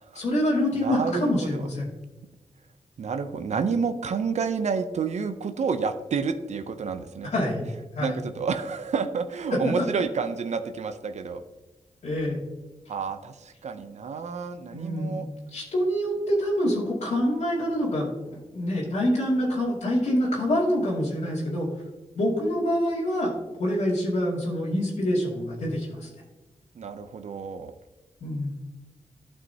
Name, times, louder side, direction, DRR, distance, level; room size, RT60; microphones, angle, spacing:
voice 1, 0.1-1.9 7.3-7.7 7.9-8.2 9.5-9.8 12.0-12.4 14.7-21.7 22.2-23.3 23.6-26.1 28.2-28.6, equal, 75° left, -6 dB, 2.3 m, -26 dB
voice 2, 0.7-1.6 3.0-7.3 8.0-11.4 12.9-15.3 26.8-27.7, right 5 dB, 70° right, 9 dB, 0.6 m, -29 dB
12.5 x 5.5 x 2.8 m, 1.1 s
wide cardioid pair, 90°, 12 cm